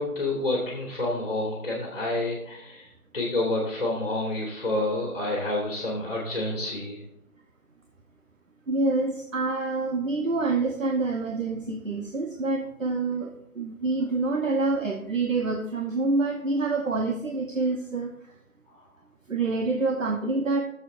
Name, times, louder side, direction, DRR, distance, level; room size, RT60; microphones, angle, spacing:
voice 1, 0.0-7.0, left 2 dB, 35° left, -3 dB, 2.5 m, -29 dB
voice 2, 8.7-13.3 13.5-18.1 19.3-20.6, right 3 dB, 60° right, 2 dB, 1.2 m, -26 dB
17.0 x 7.2 x 2.7 m, 0.79 s
figure-of-eight pair, 170°, 44 cm